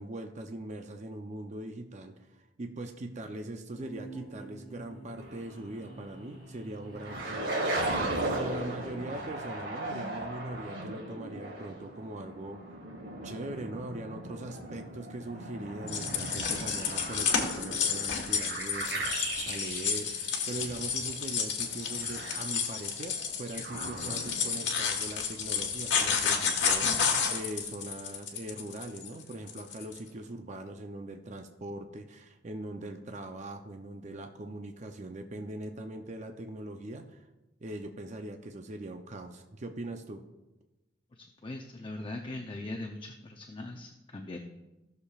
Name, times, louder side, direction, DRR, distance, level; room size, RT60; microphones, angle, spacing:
voice 1, 0.0-7.5 8.3-12.6 13.2-20.1 20.5-37.3 37.6-40.2, right 1 dB, 40° right, 5 dB, 0.6 m, -41 dB
sound 1, 3.7-9.5, right 2 dB, ahead, 3.4 m, -50 dB
sound 2, 5.2-5.6 6.1-6.2 6.8-21.2 21.5-24.7, right 1 dB, 80° right, 3.0 m, -37 dB
sound 3, 15.9-30.0, left 6 dB, 70° left, 1.4 m, -31 dB
voice 2, 41.1-44.4, left 2 dB, 30° left, 3 dB, 0.6 m, -40 dB
16.5 x 6.6 x 2.4 m, 1.0 s
head